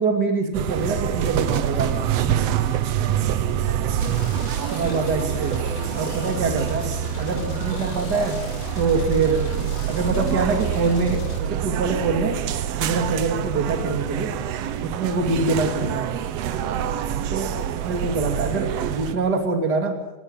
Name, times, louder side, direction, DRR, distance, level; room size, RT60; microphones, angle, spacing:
voice 1, 0.0-2.0 4.7-5.6 6.0-6.9 7.2-8.4 8.8-9.4 9.9-12.4 12.8-14.3 14.8-16.2 17.3-17.5 17.8-20.0, right 4 dB, 35° right, 5 dB, 2.9 m, -24 dB
sound 1, 0.5-19.2, right 10 dB, 65° right, 1.9 m, -26 dB
voice 2, 2.9-3.9 14.4-14.8 16.6-17.3, right 9 dB, 90° right, 10 dB, 2.7 m, -36 dB
sound 2, 4.0-11.4, right 2 dB, 60° left, 3.8 m, -33 dB
18.5 x 18.0 x 9.0 m, 1.1 s
omnidirectional pair, 3.6 m